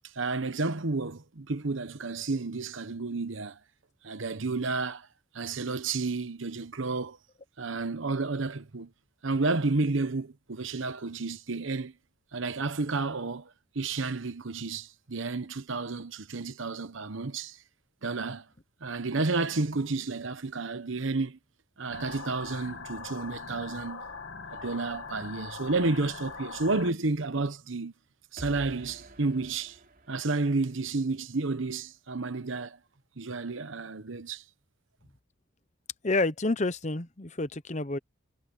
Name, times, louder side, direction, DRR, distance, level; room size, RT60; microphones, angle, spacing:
voice 1, 0.1-3.6 4.0-5.1 5.3-7.2 7.6-8.9 9.2-11.9 12.3-13.5 13.7-17.6 18.0-18.4 18.8-21.4 21.8-24.0 24.5-27.9 28.3-29.8 30.1-32.8 33.2-34.4, right 3 dB, 70° right, 1.0 m, -31 dB
sound 1, 21.9-26.9, left 4 dB, 70° left, 2.1 m, -41 dB
sound 2, 28.4-31.3, right 1 dB, 45° right, 3.9 m, -49 dB
voice 2, 36.0-38.0, left 2 dB, 35° left, 0.9 m, -29 dB
head